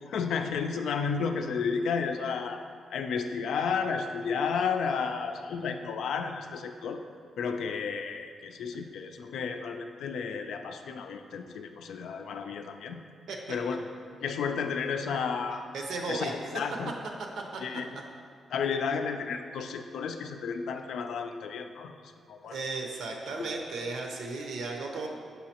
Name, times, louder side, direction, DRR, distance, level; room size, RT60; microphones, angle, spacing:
voice 1, 0.1-2.6 2.9-7.0 7.4-13.0 13.5-13.9 14.2-15.7 16.1-16.9 17.6-17.8 18.5-21.9 22.3-22.6, left 5 dB, 85° left, 5 dB, 0.4 m, -32 dB
voice 2, 15.7-16.3 17.5-17.6 22.4-25.1, right 3 dB, 75° right, 2 dB, 0.8 m, -35 dB
7.1 x 5.6 x 2.9 m, 2.1 s
wide cardioid pair, 165°, 0 cm